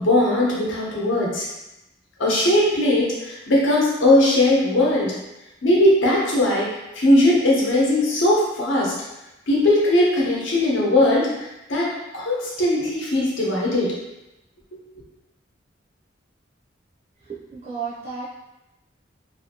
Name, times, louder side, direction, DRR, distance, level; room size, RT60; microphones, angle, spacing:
voice 1, 0.0-1.4 2.2-5.2 5.6-8.9 9.5-14.0, left 1 dB, 80° left, -4 dB, 0.9 m, -19 dB
voice 2, 17.2-18.3, right 5 dB, 35° right, -7 dB, 0.4 m, -33 dB
2.8 x 2.6 x 2.7 m, 0.96 s
head